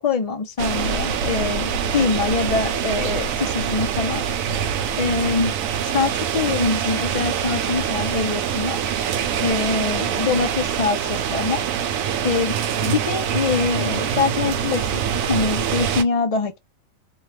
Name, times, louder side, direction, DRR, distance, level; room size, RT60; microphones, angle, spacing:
voice 1, 0.0-4.2 5.0-5.5 5.8-8.8 9.4-11.6 12.2-12.6 12.8-15.0 15.3-16.6, left 4 dB, 75° left, 0.3 m, -24 dB
sound 1, 0.6-16.0, right 8 dB, 85° right, 1.0 m, -24 dB
3.0 x 2.2 x 3.1 m
omnidirectional pair, 1.4 m